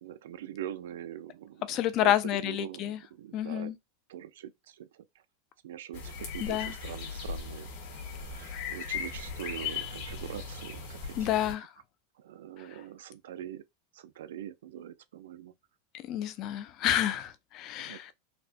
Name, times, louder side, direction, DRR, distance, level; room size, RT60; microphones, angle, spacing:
voice 1, 0.0-3.7 4.1-5.0 5.6-7.7 8.2-11.5 12.2-13.6 13.9-15.5 17.7-18.1, right 11 dB, 85° right, 0.4 m, -43 dB
voice 2, 1.7-3.0 3.3-3.8 6.4-6.7 11.2-11.7 16.1-18.1, left 12 dB, 30° left, 0.3 m, -29 dB
sound 1, 5.9-11.5, left 6 dB, 45° left, 1.5 m, -38 dB
4.1 x 2.1 x 2.6 m
supercardioid pair, 180°, 0 cm